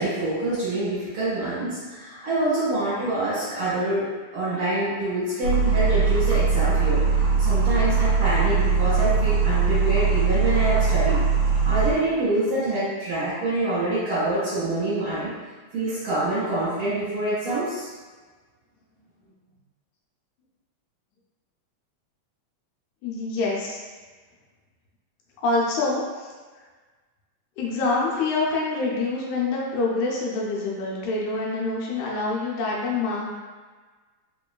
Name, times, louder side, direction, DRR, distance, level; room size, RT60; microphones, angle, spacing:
voice 1, 0.0-4.1 4.3-7.0 7.4-11.2 11.6-15.3 15.7-17.9, right 2 dB, 50° right, -11 dB, 1.9 m, -26 dB
electric milk frother, 5.4-11.9, right 5 dB, 75° right, 1.5 m, -21 dB
voice 2, 23.0-23.8 25.4-26.6 27.6-33.3, left 3 dB, 80° left, -4 dB, 1.9 m, -26 dB
4.4 x 3.0 x 2.2 m, 1.4 s
omnidirectional pair, 3.4 m